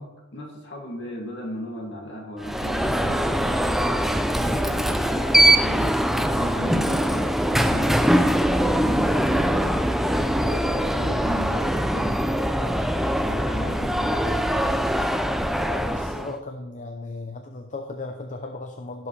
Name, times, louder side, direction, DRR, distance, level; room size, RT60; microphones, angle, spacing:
voice 1, 0.0-3.6 4.3-9.8 10.3-14.8, equal, 50° left, 0 dB, 2.5 m, -36 dB
Alarm, 2.4-16.3, equal, ahead, 0.4 m, -22 dB
voice 2, 15.6-19.1, left 2 dB, 35° left, 4 dB, 0.7 m, -36 dB
16.5 x 7.3 x 3.4 m, 1.1 s
head